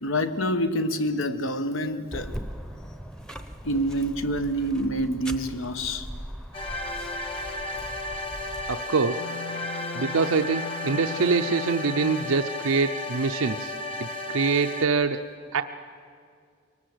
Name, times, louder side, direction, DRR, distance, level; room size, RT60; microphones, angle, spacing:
voice 1, 0.0-2.4 3.6-6.1, equal, 70° left, 9 dB, 1.2 m, -27 dB
sound 1, 2.1-8.8, equal, 5° left, 0.9 m, -40 dB
sound 2, 6.5-14.9, left 1 dB, 25° left, 1.7 m, -34 dB
voice 2, 8.7-9.3 9.9-13.7 14.0-15.6, right 4 dB, 80° right, 6 dB, 0.6 m, -25 dB
Wind instrument woodwind instrument, 9.1-12.5, left 4 dB, 50° left, 0.6 m, -38 dB
23.0 x 19.5 x 7.9 m, 2.2 s
head